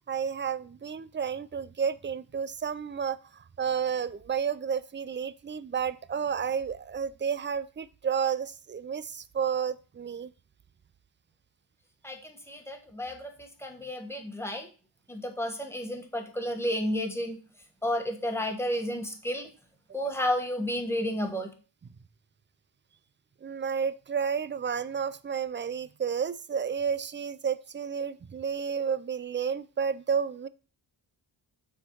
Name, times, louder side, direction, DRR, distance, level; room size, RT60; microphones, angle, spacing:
voice 1, 0.1-3.2 3.6-10.3 23.4-30.5, right 7 dB, 25° right, 16 dB, 0.4 m, -31 dB
voice 2, 12.0-14.7 15.1-17.4 17.8-19.5 19.9-21.5, equal, 5° left, 3 dB, 1.4 m, -32 dB
7.2 x 4.3 x 4.6 m, 0.36 s
wide cardioid pair, 95°, 45 cm